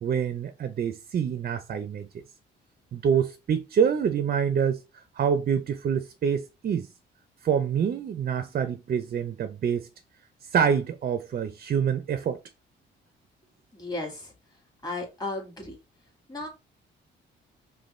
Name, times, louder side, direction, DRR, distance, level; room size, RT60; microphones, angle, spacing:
voice 1, 0.0-2.1 2.9-4.8 5.2-6.9 7.4-9.9 10.5-12.4, right 7 dB, 45° right, 0.6 m, -26 dB
voice 2, 13.7-14.3 14.8-15.8 16.3-16.5, left 2 dB, 20° left, 2.0 m, -34 dB
5.1 x 2.3 x 3.2 m
cardioid pair, 90°, 20 cm